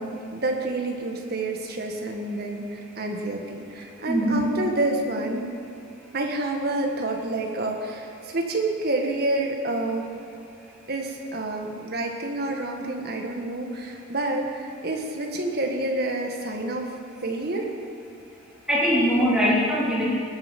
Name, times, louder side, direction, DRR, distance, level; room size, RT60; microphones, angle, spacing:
voice 1, 0.0-5.5 6.1-10.2 10.9-16.9 17.2-17.7, right 2 dB, 45° right, 2 dB, 1.7 m, -28 dB
voice 2, 4.1-4.4 18.7-20.0, equal, 5° right, -8 dB, 3.6 m, -21 dB
20.5 x 8.9 x 5.4 m, 2.5 s
head